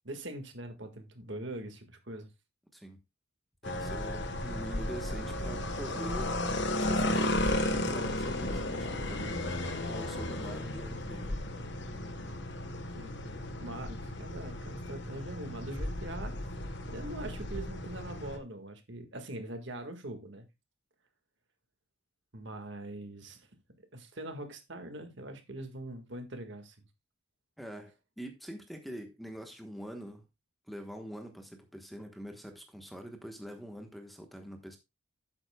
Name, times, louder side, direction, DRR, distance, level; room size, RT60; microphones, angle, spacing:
voice 1, 0.0-2.3 12.9-13.1 13.6-16.5 16.9-20.5 22.3-23.5 23.9-26.8, right 1 dB, 55° right, 1.8 m, -42 dB
sound 1, 3.6-18.4, left 1 dB, 55° left, 1.2 m, -34 dB
voice 2, 3.6-6.4 6.7-9.5 9.9-11.4 27.6-30.2 30.7-34.8, equal, ahead, 1.2 m, -44 dB
11.5 x 9.0 x 2.3 m
head